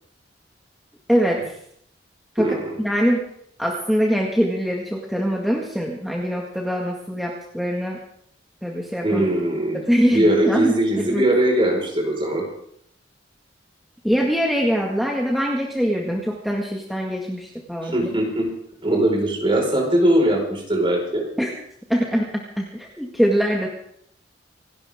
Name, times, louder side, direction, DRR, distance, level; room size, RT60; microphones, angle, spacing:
voice 1, 1.1-1.6 2.4-3.3 3.6-8.0 8.6-9.2 9.9-11.3 14.0-18.1 21.4-21.5 21.9-23.7, equal, ahead, -2 dB, 1.9 m, -23 dB
voice 2, 2.4-2.7 9.0-9.8 10.1-12.4 17.8-18.5 18.8-21.2, right 1 dB, 30° right, 0 dB, 4.9 m, -20 dB
27.0 x 12.5 x 3.7 m, 0.69 s
head